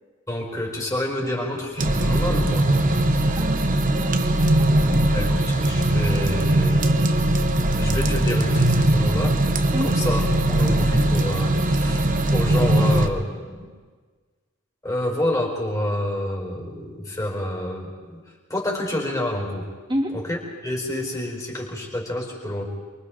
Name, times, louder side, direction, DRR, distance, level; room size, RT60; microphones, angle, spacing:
voice 1, 0.3-2.7 5.1-9.4 9.8-13.6 14.8-18.2 18.5-19.7 20.1-20.4 20.6-22.7, left 1 dB, 15° left, -2 dB, 4.8 m, -28 dB
sound 1, 1.8-13.1, right 1 dB, 40° right, 1.1 m, -20 dB
voice 2, 3.3-5.2 9.7-10.0 19.9-20.1, equal, 25° right, -1 dB, 2.9 m, -30 dB
29.0 x 23.5 x 3.9 m, 1.5 s
head